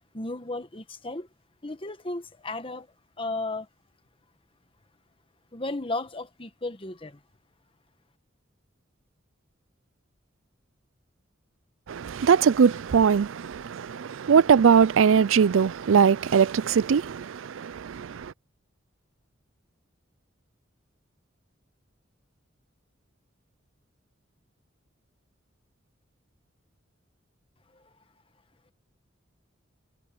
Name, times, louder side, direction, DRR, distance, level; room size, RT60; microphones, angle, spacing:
voice 1, 0.1-1.3 1.6-2.9 3.2-3.7 5.5-7.2 27.7-27.9, left 2 dB, 25° left, 1.3 m, -34 dB
voice 2, 11.9-18.3, right 6 dB, 80° right, 0.4 m, -21 dB
head